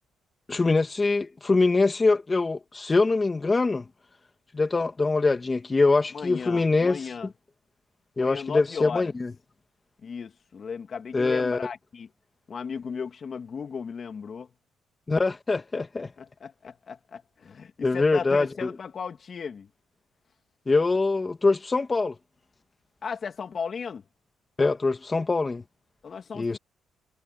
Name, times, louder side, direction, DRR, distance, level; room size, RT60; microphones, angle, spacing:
voice 1, 0.5-3.9 4.5-7.3 8.2-9.3 11.1-11.6 15.1-16.1 17.8-18.7 20.7-22.1 24.6-25.6 26.3-26.6, left 3 dB, 25° left, 2.5 m, -23 dB
voice 2, 6.1-7.3 8.2-9.0 10.0-12.1 12.5-14.5 16.2-19.7 23.0-24.0 26.0-26.6, left 6 dB, 45° left, 2.9 m, -36 dB
cardioid pair, 90°, 0 cm